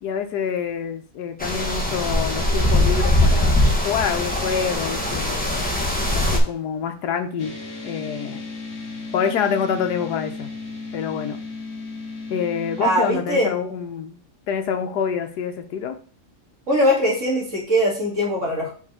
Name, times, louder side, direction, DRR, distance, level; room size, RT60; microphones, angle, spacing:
voice 1, 0.0-5.6 6.1-7.5 7.8-8.4 9.1-10.5 10.9-11.4 12.3-14.2 14.5-16.0, left 7 dB, 85° left, 7 dB, 1.4 m, -26 dB
sound 1, 1.4-6.4, left 1 dB, 5° left, 1.0 m, -21 dB
sound 2, 7.4-13.1, left 3 dB, 45° left, 1.6 m, -35 dB
voice 2, 12.8-13.5 16.7-18.7, equal, 45° right, -4 dB, 2.9 m, -21 dB
5.3 x 4.9 x 4.3 m, 0.41 s
omnidirectional pair, 1.7 m